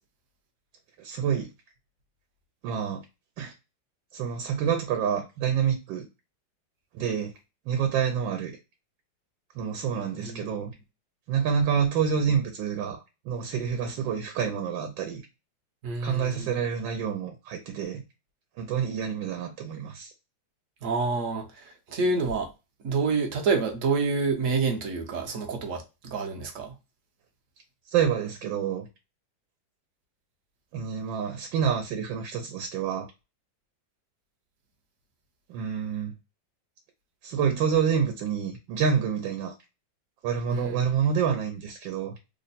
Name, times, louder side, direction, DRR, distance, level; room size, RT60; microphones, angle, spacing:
voice 1, 1.0-1.5 2.6-3.0 3.4-3.5 4.1-6.0 6.9-7.3 7.7-8.6 9.5-10.7 11.3-13.0 13.2-15.2 16.0-18.0 18.6-20.1 27.9-28.9 30.7-33.1 35.5-36.1 37.2-39.5 40.2-42.1, right 7 dB, 80° right, 1.4 m, -27 dB
voice 2, 15.8-16.5 20.8-22.5 22.8-26.7 40.5-40.8, right 4 dB, 60° right, 0.9 m, -28 dB
3.4 x 2.1 x 4.0 m
omnidirectional pair, 2.0 m